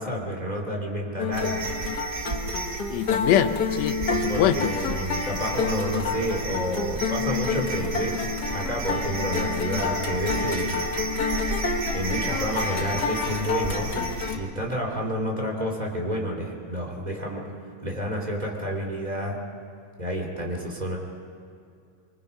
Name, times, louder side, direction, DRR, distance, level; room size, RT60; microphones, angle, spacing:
voice 1, 0.0-1.8 4.3-10.9 11.9-13.9 14.3-17.4 17.8-19.4 20.0-21.0, equal, 10° right, 0 dB, 2.8 m, -30 dB
sound 1, 1.2-14.4, left 5 dB, 50° left, 1.1 m, -29 dB
sound 2, 1.3-14.3, right 2 dB, 45° right, 1.3 m, -33 dB
voice 2, 2.9-5.0, left 10 dB, 75° left, 9 dB, 1.6 m, -24 dB
26.0 x 24.0 x 5.5 m, 2.4 s
omnidirectional pair, 4.1 m